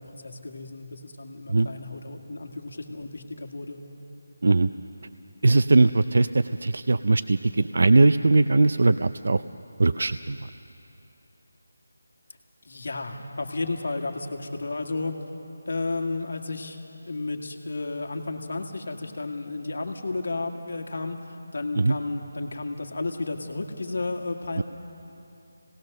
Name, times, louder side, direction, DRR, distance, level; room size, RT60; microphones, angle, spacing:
voice 1, 0.0-3.8 12.6-15.2 15.7-16.8 17.1-24.6, left 3 dB, 50° left, 3 dB, 1.8 m, -32 dB
voice 2, 5.4-9.4 9.8-10.4 21.8-22.0 24.6-24.7, right 3 dB, 50° right, 12 dB, 0.4 m, -20 dB
28.0 x 18.5 x 6.6 m, 2.9 s
figure-of-eight pair, 180°, 0 cm